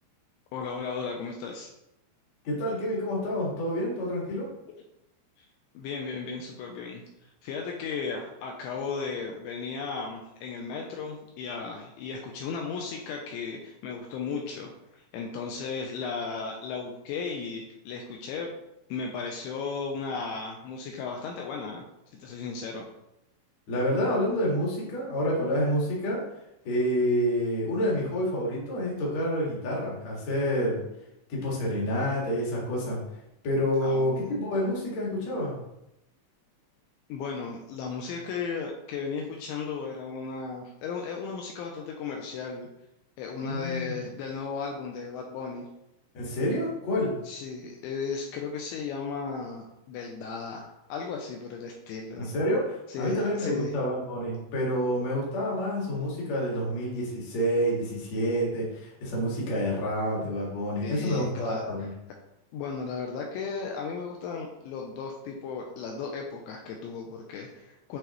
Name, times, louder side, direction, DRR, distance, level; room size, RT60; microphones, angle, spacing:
voice 1, 0.5-1.7 5.4-5.5 5.7-18.5 18.9-21.8 22.1-22.9 33.8-34.3 37.1-42.7 43.2-45.7 47.2-52.3 52.9-53.8 60.8-61.9 62.5-68.0, left 5 dB, 90° left, 1 dB, 2.6 m, -35 dB
voice 2, 2.4-4.5 23.7-26.2 26.6-30.8 31.3-33.0 33.4-35.6 43.4-44.0 46.1-47.1 52.2-61.9, equal, 55° left, -4 dB, 2.1 m, -28 dB
9.3 x 4.0 x 3.0 m, 0.87 s
omnidirectional pair, 5.8 m